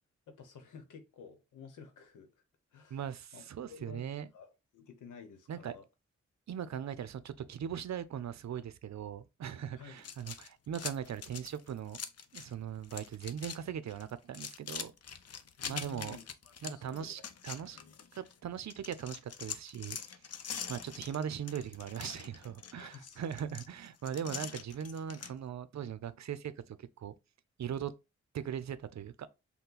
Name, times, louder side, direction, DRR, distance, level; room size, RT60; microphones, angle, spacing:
voice 1, 0.3-2.3 2.7-3.0 3.3-3.4 3.7-4.0 4.3-5.8 9.8-10.1 15.6-16.2 16.6-17.1 17.7-17.9 22.7-23.2, left 5 dB, 90° left, 0.9 m, -51 dB
voice 2, 2.9-4.3 5.5-5.7 6.5-12.0 12.3-14.9 15.7-16.2 16.6-17.8 18.1-20.0 20.7-27.1 27.6-27.9 28.3-29.3, right 8 dB, 65° right, 0.6 m, -39 dB
sound 1, 10.0-12.5 12.8-13.6 13.9-18.3 18.7-25.3, left 7 dB, 55° left, 0.7 m, -44 dB
5.5 x 2.2 x 3.9 m
supercardioid pair, 40°, 30 cm